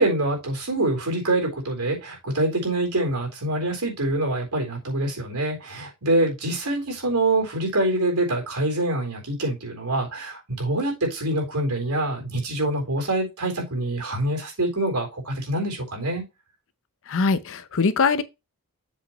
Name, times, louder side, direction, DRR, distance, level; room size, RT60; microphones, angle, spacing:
voice 1, 0.0-16.2, right 1 dB, 85° right, 3.8 m, -25 dB
voice 2, 17.1-18.2, left 4 dB, 60° left, 0.7 m, -22 dB
7.5 x 6.1 x 3.0 m
head